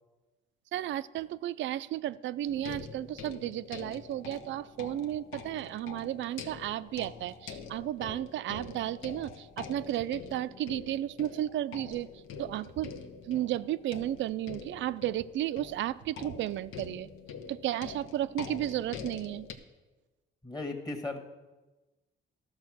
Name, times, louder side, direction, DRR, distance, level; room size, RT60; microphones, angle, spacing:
voice 1, 0.7-12.1 12.4-13.0 13.2-17.1 17.5-19.5, right 13 dB, 70° right, 16 dB, 0.4 m, -33 dB
sound 1, 2.5-19.5, left 6 dB, 85° left, 0.9 m, -45 dB
voice 2, 20.4-21.2, left 2 dB, 20° left, 5 dB, 1.4 m, -36 dB
12.5 x 6.2 x 6.1 m, 1.1 s
cardioid pair, 90°, 20 cm